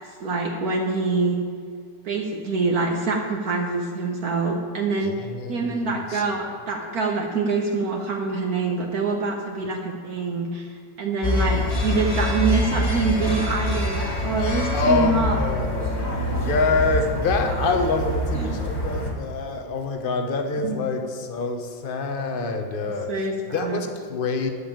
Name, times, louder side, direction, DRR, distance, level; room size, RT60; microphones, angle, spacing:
voice 1, 0.2-1.4 2.0-15.4 17.4-17.7 18.3-18.5 20.6-21.1 22.8-23.8, right 3 dB, 55° right, 1 dB, 1.2 m, -25 dB
voice 2, 5.0-5.8 6.1-6.2 14.7-23.3 23.5-24.5, left 3 dB, 40° left, 6 dB, 0.8 m, -26 dB
sound 1, 11.2-19.1, left 1 dB, 25° left, 1.6 m, -25 dB
11.5 x 5.5 x 8.7 m, 2.3 s
omnidirectional pair, 2.2 m